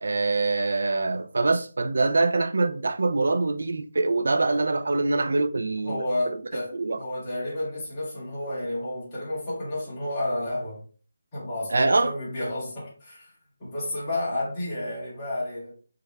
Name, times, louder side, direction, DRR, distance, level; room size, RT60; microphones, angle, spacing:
voice 1, 0.0-6.1 6.7-7.0 11.7-12.1, right 3 dB, 65° right, 0.3 m, -24 dB
voice 2, 5.8-10.8 11.3-13.3 13.6-15.7, left 1 dB, 15° left, 1.9 m, -31 dB
5.4 x 3.3 x 2.3 m
figure-of-eight pair, 175°, 0 cm